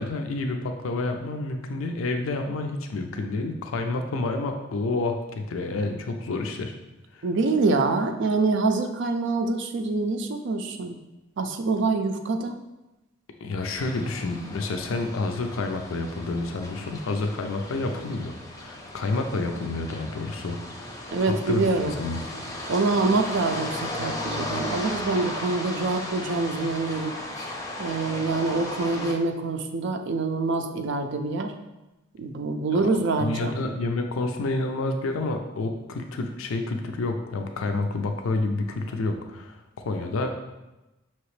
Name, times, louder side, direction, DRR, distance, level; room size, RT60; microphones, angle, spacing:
voice 1, 0.0-6.7 7.1-7.2 13.4-22.2 33.2-39.6 39.8-40.3, left 2 dB, 80° left, 5 dB, 0.5 m, -29 dB
voice 2, 7.2-11.0 11.4-12.6 21.1-22.0 22.7-27.2 27.8-31.5 32.2-33.6, right 3 dB, 65° right, 6 dB, 0.4 m, -25 dB
sound 1, 13.8-29.1, left 1 dB, 15° left, 0.6 m, -36 dB
5.6 x 3.0 x 3.1 m, 1.0 s
head